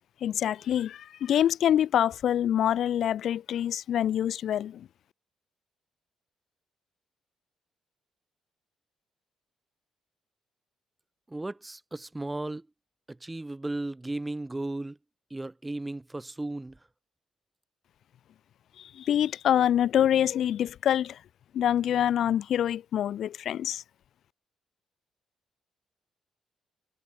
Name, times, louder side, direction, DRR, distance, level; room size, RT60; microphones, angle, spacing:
voice 1, 0.2-4.9 18.8-21.2 21.5-23.8, left 10 dB, 70° left, 0.9 m, -26 dB
voice 2, 11.3-12.7 13.1-15.0 15.3-16.8, right 2 dB, 15° right, 3.0 m, -35 dB
cardioid pair, 90°, 0 cm